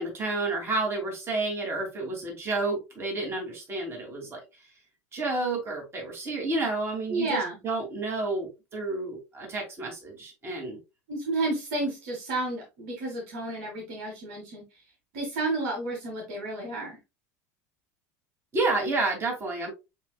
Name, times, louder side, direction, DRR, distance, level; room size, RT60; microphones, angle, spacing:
voice 1, 0.0-4.4 5.1-10.8 18.5-19.7, right 3 dB, 30° right, 0 dB, 2.7 m, -30 dB
voice 2, 7.1-7.6 11.1-14.6 15.1-17.0, right 2 dB, 70° right, 1 dB, 1.7 m, -31 dB
7.2 x 3.0 x 2.3 m, 0.25 s
hypercardioid pair, 85°, 8 cm